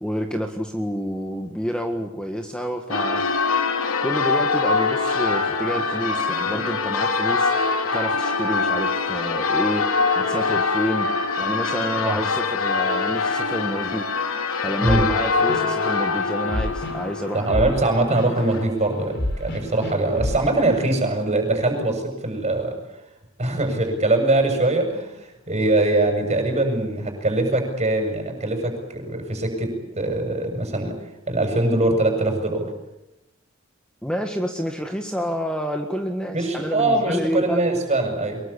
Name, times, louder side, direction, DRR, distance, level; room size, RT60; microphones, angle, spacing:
voice 1, 0.0-3.2 4.0-7.5 7.9-9.9 10.1-11.1 11.4-14.1 14.6-17.7 34.0-37.6, equal, 5° left, 4 dB, 1.7 m, -28 dB
Church bell, 2.9-18.6, left 4 dB, 85° left, 3.0 m, -24 dB
sound 1, 4.3-20.9, left 1 dB, 55° left, 4.4 m, -35 dB
voice 2, 14.8-15.1 17.3-22.7 23.4-30.9 31.3-32.7 36.3-38.4, right 2 dB, 35° right, 4 dB, 7.4 m, -22 dB
24.0 x 22.0 x 8.6 m, 0.92 s
head